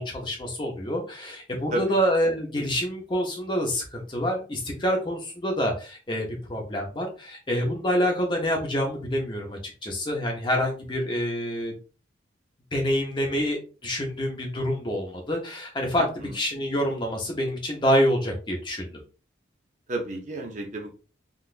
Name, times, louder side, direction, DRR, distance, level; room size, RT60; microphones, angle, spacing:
voice 1, 0.0-11.7 12.7-19.0, equal, 25° left, 1 dB, 0.7 m, -27 dB
voice 2, 16.0-16.4 19.9-20.9, right 1 dB, 40° right, 3 dB, 0.6 m, -32 dB
3.8 x 2.4 x 2.4 m, 0.35 s
head